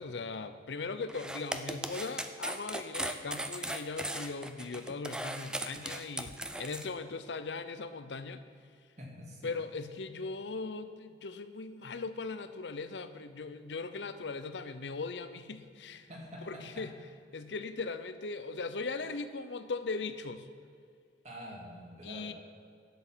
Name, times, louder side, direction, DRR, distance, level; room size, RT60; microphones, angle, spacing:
voice 1, 0.0-8.4 9.4-16.1 16.4-17.0 17.3-20.5 22.0-22.3, left 4 dB, 75° left, 11 dB, 0.7 m, -39 dB
sound 1, 1.1-6.9, right 1 dB, 5° right, 0.5 m, -38 dB
voice 2, 9.0-9.5 16.1-16.9 21.2-22.3, equal, 40° right, -2 dB, 2.4 m, -46 dB
11.5 x 8.0 x 6.2 m, 2.3 s
head